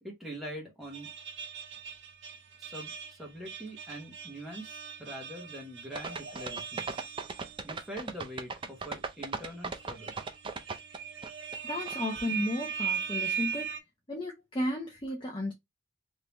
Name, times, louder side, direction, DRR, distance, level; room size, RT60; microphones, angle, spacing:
voice 1, 0.0-1.1 2.6-7.0 7.6-10.1, equal, ahead, 1.1 m, -43 dB
sound 1, 0.8-7.9 8.3-8.4 9.4-13.8, right 7 dB, 60° right, 0.7 m, -39 dB
sound 2, 5.9-11.6 11.8-11.9, right 4 dB, 25° right, 0.3 m, -37 dB
voice 2, 11.6-13.8 14.1-15.5, left 1 dB, 25° left, 0.7 m, -34 dB
3.4 x 2.8 x 2.9 m
head